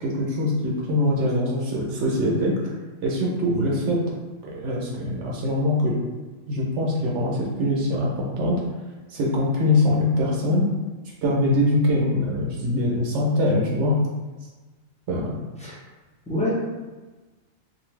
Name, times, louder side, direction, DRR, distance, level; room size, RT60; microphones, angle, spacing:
voice 1, 0.0-2.7 3.0-4.0 4.4-6.0 6.5-8.5 9.1-10.6 11.2-14.0 15.1-15.3, left 1 dB, 65° right, -3 dB, 0.9 m, -23 dB
voice 2, 3.5-3.7 15.6-15.8 16.3-16.5, left 1 dB, 10° left, -8 dB, 0.4 m, -26 dB
2.6 x 2.5 x 3.1 m, 1.2 s
omnidirectional pair, 1.4 m